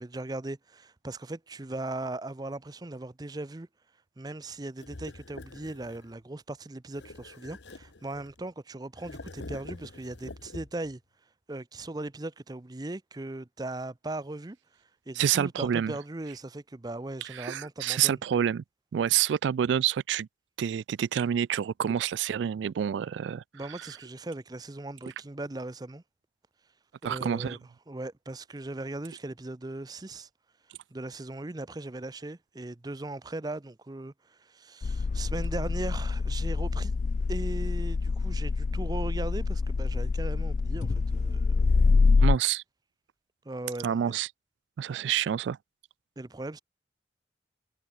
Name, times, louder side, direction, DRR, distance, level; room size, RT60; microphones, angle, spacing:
voice 1, 0.0-3.7 4.2-11.0 11.5-14.6 15.1-18.2 23.5-26.0 27.0-27.6 27.9-30.3 30.9-36.9 37.3-41.7 43.4-44.2 46.2-46.6, right 2 dB, 20° right, 0.6 m, -38 dB
sound 1, 4.8-6.1 6.9-8.5 9.0-11.0, left 2 dB, 80° left, 1.2 m, -45 dB
voice 2, 15.2-15.9 17.3-18.6 18.9-20.3 20.6-23.4 23.8-23.9 27.0-27.6 42.2-42.6 43.8-44.3 44.8-45.6, right 9 dB, 85° right, 0.3 m, -28 dB
sound 2, 34.8-42.4, left 4 dB, 40° left, 0.3 m, -26 dB
head